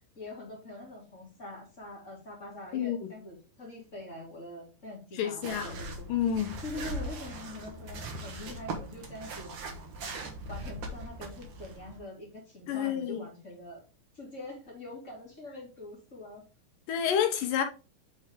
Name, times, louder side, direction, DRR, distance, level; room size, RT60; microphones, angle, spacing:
voice 1, 0.2-6.1 6.6-9.5 10.5-13.8 14.1-16.4, left 2 dB, 25° left, 2.3 m, -44 dB
voice 2, 5.1-5.8 6.1-6.6 12.7-13.2 16.9-17.6, left 9 dB, 75° left, 2.3 m, -29 dB
sound 1, 5.4-12.0, right 2 dB, 55° right, 1.7 m, -40 dB
8.1 x 4.3 x 3.6 m
omnidirectional pair, 4.1 m